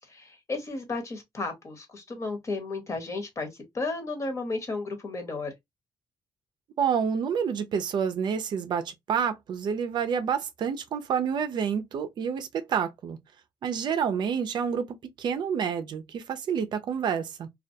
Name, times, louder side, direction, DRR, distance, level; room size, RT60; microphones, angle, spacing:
voice 1, 0.1-3.5 3.7-5.5, left 3 dB, 35° left, 1.0 m, -33 dB
voice 2, 6.8-13.2 13.6-17.5, right 7 dB, 65° right, 0.4 m, -28 dB
2.3 x 2.2 x 2.6 m
cardioid pair, 95°, 8 cm